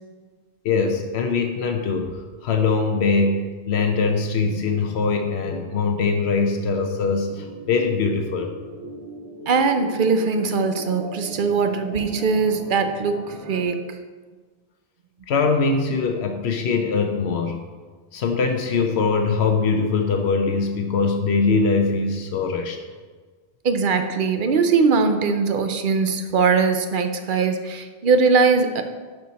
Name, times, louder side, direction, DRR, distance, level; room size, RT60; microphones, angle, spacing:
voice 1, 0.6-8.5 15.3-17.6 18.1-22.8, left 4 dB, 90° left, 5 dB, 1.0 m, -22 dB
sound 1, 4.4-13.6, right 1 dB, 80° right, 1.8 m, -40 dB
voice 2, 9.5-14.0 23.6-28.8, right 4 dB, 55° right, 7 dB, 0.8 m, -21 dB
11.0 x 4.6 x 4.1 m, 1.4 s
omnidirectional pair, 1.1 m